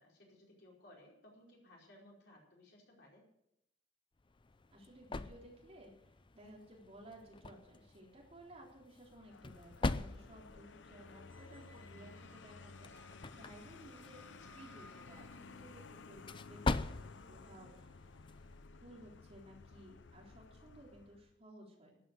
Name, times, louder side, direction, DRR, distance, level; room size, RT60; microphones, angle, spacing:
voice 1, 0.0-3.3, left 1 dB, 60° left, -2 dB, 5.0 m, -60 dB
sound 1, 4.2-18.7, left 3 dB, 25° left, 0.5 m, -44 dB
voice 2, 4.7-5.9 6.3-18.0 18.7-22.0, right 1 dB, 35° right, -2 dB, 3.8 m, -57 dB
Vehicle, 9.1-21.3, left 4 dB, 75° left, 0.7 m, -55 dB
Squeak, 11.3-15.8, equal, 10° left, 1.4 m, -64 dB
13.0 x 9.6 x 8.1 m, 0.81 s
head